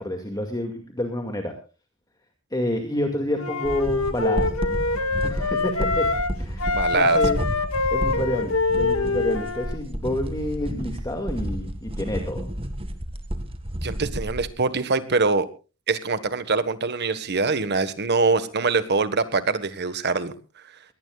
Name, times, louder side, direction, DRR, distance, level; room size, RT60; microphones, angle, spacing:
voice 1, 0.0-1.5 2.5-4.5 5.2-6.1 6.4-7.4 7.9-12.4, left 1 dB, 20° left, 4 dB, 2.2 m, -28 dB
Wind instrument woodwind instrument, 3.4-6.3 6.6-9.8, left 3 dB, 80° left, 1.9 m, -24 dB
sound 1, 3.6-14.5, equal, 25° right, 2.0 m, -31 dB
voice 2, 6.7-7.2 13.8-15.5 15.9-20.3, right 4 dB, 50° right, 13 dB, 1.5 m, -23 dB
22.0 x 18.5 x 2.4 m, 0.33 s
head